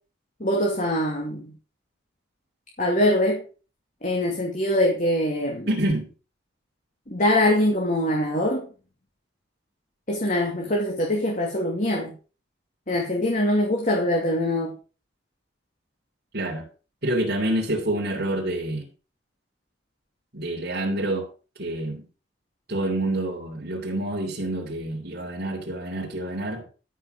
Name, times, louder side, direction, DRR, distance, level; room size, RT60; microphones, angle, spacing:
voice 1, 0.4-1.5 2.8-3.4 4.0-5.7 7.1-8.7 10.1-12.1 12.9-14.7, left 1 dB, 40° left, 0 dB, 2.5 m, -23 dB
voice 2, 5.7-6.1 16.3-16.6 17.0-18.9 20.3-21.3 21.6-22.1 22.7-26.6, right 1 dB, 55° right, -4 dB, 3.4 m, -27 dB
13.0 x 6.3 x 6.5 m, 0.36 s
head